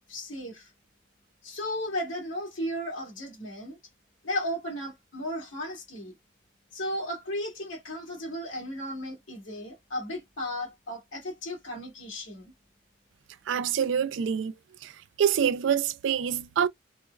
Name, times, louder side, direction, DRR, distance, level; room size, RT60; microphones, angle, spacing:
voice 1, 0.1-0.7 1.4-3.8 4.2-6.1 6.7-12.5, equal, 70° left, 1.8 m, -35 dB
voice 2, 13.5-14.5 14.8-14.9 15.2-16.7, right 8 dB, 65° right, 0.3 m, -26 dB
4.1 x 2.1 x 2.2 m
head